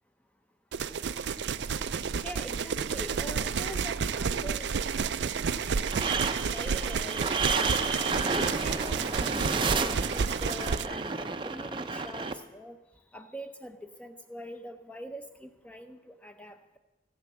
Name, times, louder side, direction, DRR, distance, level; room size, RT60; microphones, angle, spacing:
sound 1, 0.7-10.9, right 6 dB, 70° right, 0.4 m, -31 dB
voice 1, 2.1-5.9 6.1-7.4 8.2-12.8 13.1-16.8, equal, 5° left, 8 dB, 0.8 m, -44 dB
sound 2, 5.9-12.3, right 4 dB, 25° right, 0.6 m, -31 dB
16.0 x 8.0 x 7.3 m, 1.1 s
head